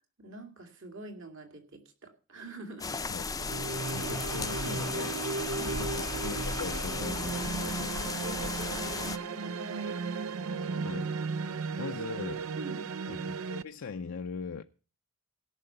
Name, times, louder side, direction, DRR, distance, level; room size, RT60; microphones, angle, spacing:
voice 1, 0.2-3.0 5.5-5.8 7.9-10.0 12.6-12.9, right 2 dB, 65° right, 2.4 m, -45 dB
sound 1, 2.8-9.2, left 4 dB, 15° left, 0.5 m, -35 dB
sound 2, 3.4-13.6, right 4 dB, 85° right, 0.5 m, -35 dB
voice 2, 3.9-5.2 5.8-8.0 10.8-11.1 11.8-12.5 13.1-14.6, left 5 dB, 80° left, 0.6 m, -40 dB
17.0 x 5.7 x 6.6 m
head